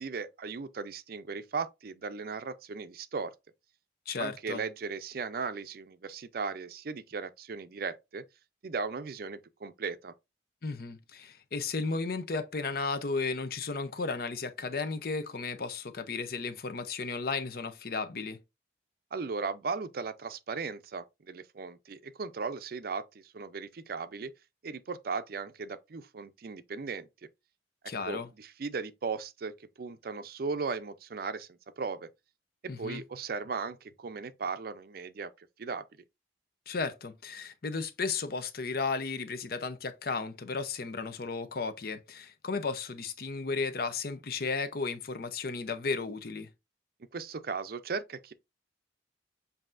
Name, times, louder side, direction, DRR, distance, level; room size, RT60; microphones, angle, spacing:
voice 1, 0.0-3.3 4.2-8.2 8.6-10.1 19.1-24.3 24.6-27.1 28.0-31.5 31.8-32.1 32.6-35.8 47.1-48.3, right 4 dB, 55° right, 0.5 m, -37 dB
voice 2, 4.1-4.6 10.6-18.4 27.9-28.3 32.7-33.0 36.7-46.5, left 4 dB, 55° left, 0.6 m, -34 dB
7.5 x 2.7 x 2.5 m
head